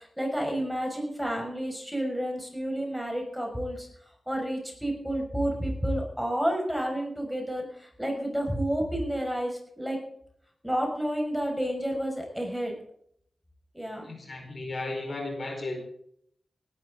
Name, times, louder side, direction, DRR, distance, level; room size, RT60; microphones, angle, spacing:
voice 1, 0.2-3.9 4.3-7.7 8.0-10.0 10.6-12.7 13.7-14.1, equal, ahead, 1 dB, 6.0 m, -30 dB
voice 2, 14.0-15.8, left 2 dB, 50° left, 3 dB, 4.6 m, -35 dB
18.5 x 12.5 x 3.9 m, 0.67 s
wide cardioid pair, 75°, 0 cm